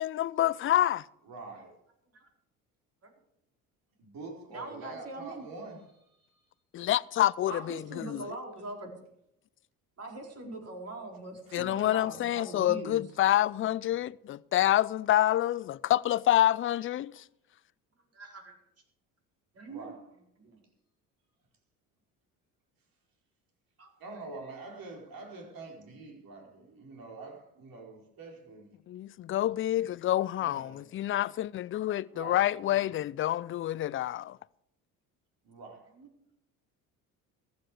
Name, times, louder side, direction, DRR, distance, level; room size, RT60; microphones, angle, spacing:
voice 1, 0.0-1.0 6.7-8.2 11.5-17.2 28.9-34.4, left 13 dB, 30° left, 0.4 m, -27 dB
voice 2, 1.2-1.8 4.0-6.5 11.5-12.1 19.6-20.1 24.0-28.8 30.4-30.8 32.1-33.0 35.4-35.9, right 3 dB, 55° right, 4.7 m, -46 dB
voice 3, 4.5-5.4 7.5-8.9 10.0-13.0 18.1-18.6 19.5-19.9 20.4-20.6 23.8-23.9 26.7-26.8 36.0-36.1, right 2 dB, 35° right, 4.4 m, -42 dB
15.0 x 12.0 x 4.8 m
hypercardioid pair, 60°, 42 cm